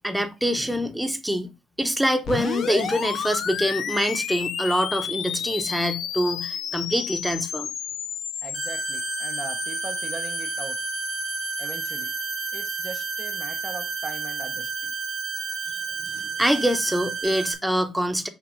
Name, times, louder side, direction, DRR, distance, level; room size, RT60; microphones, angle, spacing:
voice 1, 0.0-1.5 1.8-7.7 16.4-18.3, equal, 5° right, 1.0 m, -25 dB
sound 1, 2.2-16.1, left 8 dB, 75° left, 0.7 m, -33 dB
voice 2, 8.4-10.8 11.6-12.1 12.5-14.9, right 4 dB, 35° right, 0.8 m, -40 dB
sound 2, 8.5-17.5, right 6 dB, 80° right, 2.0 m, -31 dB
6.0 x 3.3 x 4.9 m
cardioid pair, 90°, 0 cm